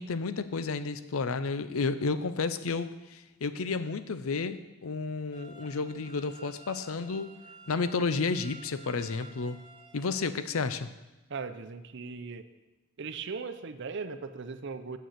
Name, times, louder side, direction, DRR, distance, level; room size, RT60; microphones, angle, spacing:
voice 1, 0.0-7.3 7.7-9.6 9.9-10.9, left 4 dB, 75° left, 12 dB, 0.6 m, -31 dB
sound 1, 5.3-10.3, right 3 dB, 20° right, 1.3 m, -52 dB
voice 2, 11.3-12.5 13.0-15.0, right 5 dB, 55° right, 10 dB, 0.6 m, -38 dB
7.1 x 6.5 x 7.9 m, 1.1 s
head